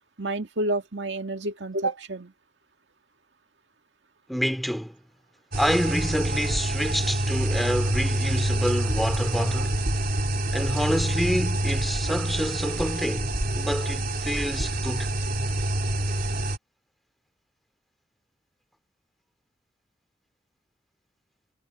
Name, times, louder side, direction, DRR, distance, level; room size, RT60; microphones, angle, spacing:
voice 1, 0.2-2.3, right 2 dB, 75° right, 2.0 m, -29 dB
voice 2, 4.3-5.0 5.6-9.8 10.5-15.1, equal, ahead, 2.5 m, -28 dB
sound 1, 5.5-16.6, right 1 dB, 55° right, 3.5 m, -27 dB
head